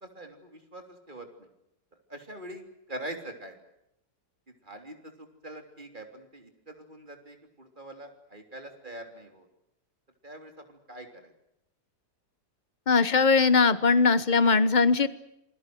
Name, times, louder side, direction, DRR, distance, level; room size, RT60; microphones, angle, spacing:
voice 1, 0.0-1.5 2.1-3.6 4.5-9.5 10.2-11.3, right 1 dB, 30° right, 5 dB, 3.4 m, -44 dB
voice 2, 12.9-15.1, left 4 dB, 30° left, 14 dB, 1.1 m, -20 dB
27.5 x 21.5 x 7.8 m, 0.82 s
omnidirectional pair, 1.8 m